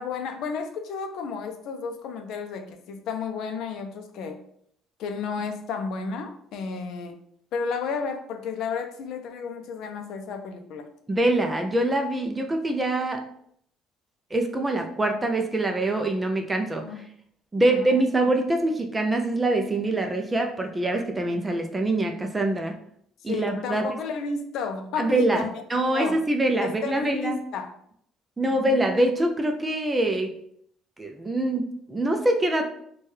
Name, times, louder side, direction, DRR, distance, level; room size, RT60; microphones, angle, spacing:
voice 1, 0.0-4.4 5.0-7.2 7.5-10.9 16.6-17.0 17.6-17.9 23.2-25.5 25.9-26.2 26.6-27.7 28.4-28.8, left 5 dB, 60° left, 6 dB, 0.4 m, -32 dB
voice 2, 11.1-13.2 14.3-17.0 17.5-22.8 23.2-23.8 25.0-27.4 28.4-30.3 31.0-32.7, right 1 dB, 15° right, 4 dB, 0.3 m, -24 dB
4.5 x 2.2 x 3.1 m, 0.68 s
cardioid pair, 170°, 0 cm